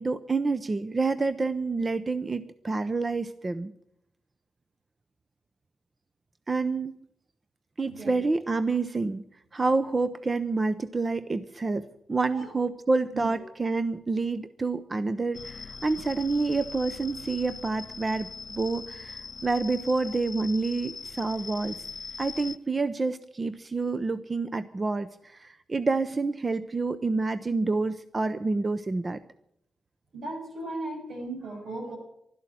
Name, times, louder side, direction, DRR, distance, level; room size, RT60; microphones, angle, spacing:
voice 1, 0.0-3.7 6.5-7.0 7.8-9.2 9.5-21.8 22.2-29.2, right 3 dB, 30° right, 13 dB, 0.7 m, -28 dB
sound 1, 15.3-22.6, left 4 dB, 40° left, 0.6 m, -41 dB
voice 2, 30.1-32.0, right 2 dB, 80° right, 0 dB, 6.9 m, -36 dB
12.5 x 12.0 x 9.6 m, 0.75 s
cardioid pair, 90°, 0 cm